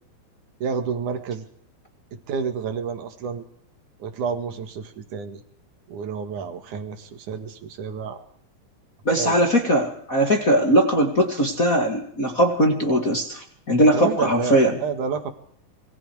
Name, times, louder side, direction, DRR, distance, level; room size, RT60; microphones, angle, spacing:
voice 1, 0.6-1.5 2.1-3.4 4.0-5.4 5.9-8.2 9.1-9.4 13.9-15.3, right 6 dB, 55° right, 8 dB, 2.8 m, -29 dB
voice 2, 9.1-14.7, equal, 30° left, 2 dB, 1.7 m, -20 dB
26.5 x 23.0 x 4.8 m, 0.63 s
omnidirectional pair, 4.9 m